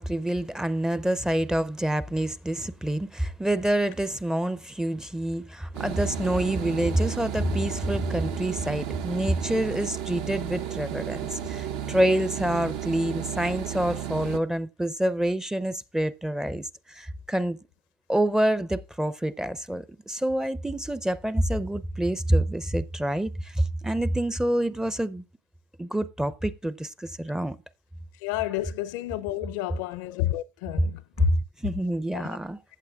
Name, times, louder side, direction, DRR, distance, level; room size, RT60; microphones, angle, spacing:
voice 1, 0.0-17.6 18.1-25.2 25.8-27.6 31.2-31.4 31.6-32.6, right 1 dB, 5° right, 0.5 m, -27 dB
sound 1, 5.7-14.4, right 10 dB, 60° right, 0.8 m, -33 dB
voice 2, 28.1-31.3 32.1-32.4, left 15 dB, 70° left, 0.6 m, -30 dB
15.0 x 8.3 x 2.3 m
supercardioid pair, 100°, 10 cm